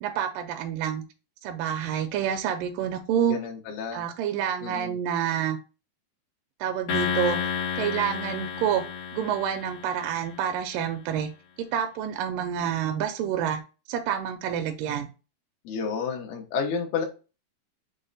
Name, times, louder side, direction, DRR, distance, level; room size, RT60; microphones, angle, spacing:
voice 1, 0.0-1.0 1.4-3.4 3.9-5.6 6.6-7.4 7.8-8.9 9.1-11.3 11.6-13.6 13.9-15.1, right 9 dB, 80° right, 4 dB, 2.0 m, -28 dB
voice 2, 3.3-4.0 4.6-5.0 15.6-17.1, left 5 dB, 90° left, 2 dB, 2.8 m, -30 dB
sound 1, 6.9-10.4, left 7 dB, 75° left, 1.3 m, -31 dB
6.2 x 2.1 x 3.8 m, 0.32 s
omnidirectional pair, 4.1 m